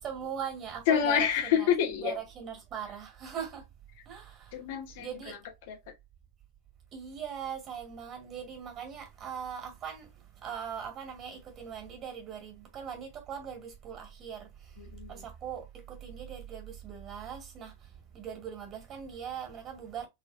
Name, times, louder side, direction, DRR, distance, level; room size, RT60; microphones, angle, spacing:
voice 1, 0.0-1.7 2.0-3.6 4.1-4.6 5.0-5.4 6.9-14.7 15.1-20.1, right 8 dB, 30° right, 2.2 m, -40 dB
voice 2, 0.9-2.2 4.5-5.4 5.7-5.8 14.8-15.2, left 9 dB, 50° left, 1.3 m, -28 dB
3.9 x 3.7 x 2.7 m
figure-of-eight pair, 90°, 0 cm